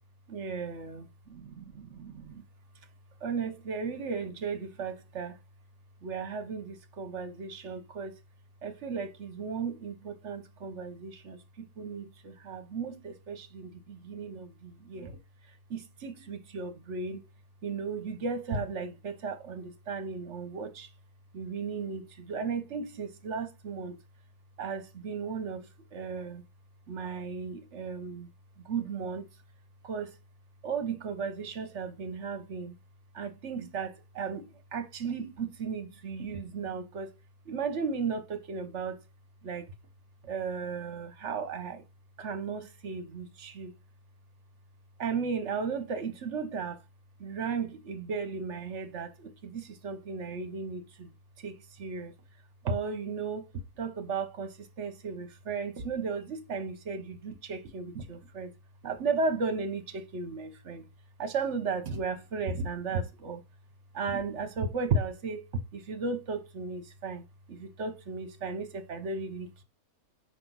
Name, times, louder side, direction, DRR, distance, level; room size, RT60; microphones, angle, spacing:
voice 1, 0.3-2.4 3.2-5.4 6.0-8.2 8.6-15.2 15.4-17.2 17.6-20.9 21.3-24.0 24.6-26.4 26.9-28.3 28.6-29.3 29.8-30.2 30.6-32.8 33.1-37.1 37.4-39.0 39.4-39.7 40.2-41.8 42.2-43.7 45.0-46.8 47.2-51.1 51.4-52.1 52.6-53.5 53.8-58.5 58.8-60.8 61.2-63.4 63.9-69.6, right 5 dB, 55° right, 1.1 m, -35 dB
5.9 x 5.0 x 3.9 m
omnidirectional pair, 1.6 m